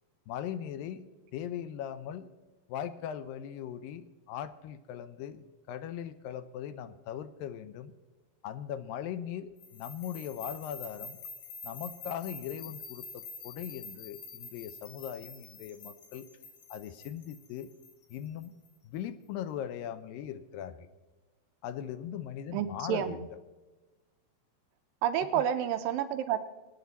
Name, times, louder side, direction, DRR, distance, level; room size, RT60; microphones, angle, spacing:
voice 1, 0.3-2.3 2.7-7.9 8.4-11.2 11.6-16.3 16.7-17.7 18.1-18.6 18.8-20.9 21.6-23.2 25.3-25.5, left 10 dB, 80° left, 12 dB, 2.1 m, -39 dB
sound 1, 9.6-18.7, left 4 dB, 55° left, 2.4 m, -47 dB
voice 2, 22.5-23.2 25.0-26.4, right 10 dB, 80° right, 8 dB, 2.1 m, -29 dB
23.5 x 9.4 x 4.1 m, 1.2 s
omnidirectional pair, 4.5 m